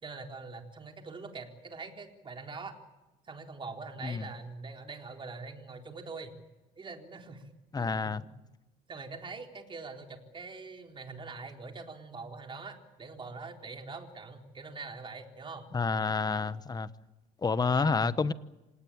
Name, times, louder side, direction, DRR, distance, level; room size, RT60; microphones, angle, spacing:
voice 1, 0.0-2.7 3.3-6.3 6.8-7.4 7.8-8.1 8.9-15.7 17.7-18.2, right 4 dB, 30° right, 4.0 m, -43 dB
voice 2, 7.7-8.2 15.7-16.9 17.4-18.3, left 4 dB, 25° left, 1.1 m, -29 dB
27.5 x 18.5 x 8.7 m
cardioid pair, 110°, 17 cm